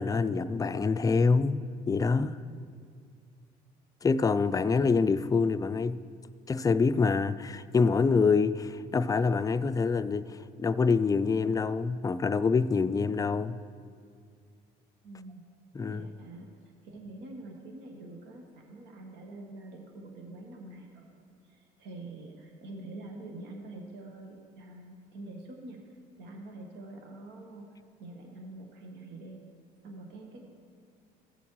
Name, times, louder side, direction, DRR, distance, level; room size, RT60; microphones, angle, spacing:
voice 1, 0.0-1.6 1.9-2.4 4.0-6.0 6.5-13.6 15.7-16.1, left 4 dB, 20° left, 0.4 m, -26 dB
voice 2, 15.0-15.4 15.9-16.5 16.8-25.8 26.2-27.6 28.0-29.4 29.8-30.4, right 2 dB, 75° right, 1.2 m, -45 dB
15.5 x 7.1 x 3.1 m
supercardioid pair, 75°, 18 cm